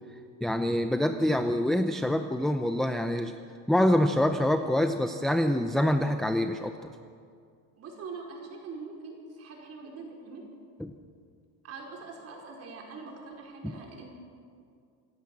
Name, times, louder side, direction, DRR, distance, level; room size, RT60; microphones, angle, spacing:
voice 1, 0.4-3.3 3.7-6.9 13.6-13.7, left 1 dB, ahead, 7 dB, 0.5 m, -26 dB
voice 2, 7.8-10.5 11.6-14.1, right 4 dB, 40° right, 0 dB, 5.0 m, -43 dB
26.5 x 17.0 x 7.3 m, 2.3 s
cardioid pair, 160°, 39 cm